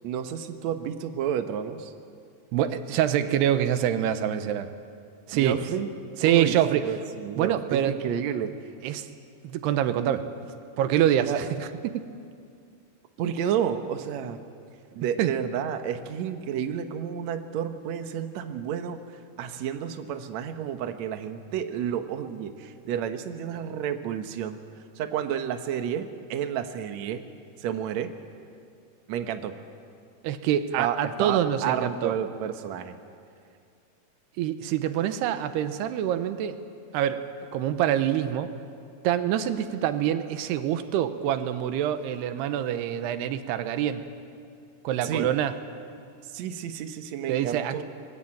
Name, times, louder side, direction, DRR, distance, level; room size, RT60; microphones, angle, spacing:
voice 1, 0.0-1.9 5.3-5.9 6.2-8.5 11.2-11.4 13.2-14.4 14.9-19.0 19.4-24.6 25.0-27.2 27.6-28.1 29.1-29.6 30.8-33.0 45.0-45.3 46.3-47.8, right 9 dB, 65° right, 7 dB, 1.8 m, -31 dB
voice 2, 2.5-4.7 5.3-5.6 6.2-6.9 7.4-8.0 8.8-9.1 9.4-10.3 10.8-12.1 15.2-15.3 30.2-32.2 34.4-36.6 36.9-37.3 37.5-38.5 39.0-44.0 44.8-45.5 47.3-47.8, right 10 dB, 85° right, 10 dB, 3.0 m, -25 dB
24.0 x 21.0 x 8.9 m, 2.4 s
omnidirectional pair, 4.7 m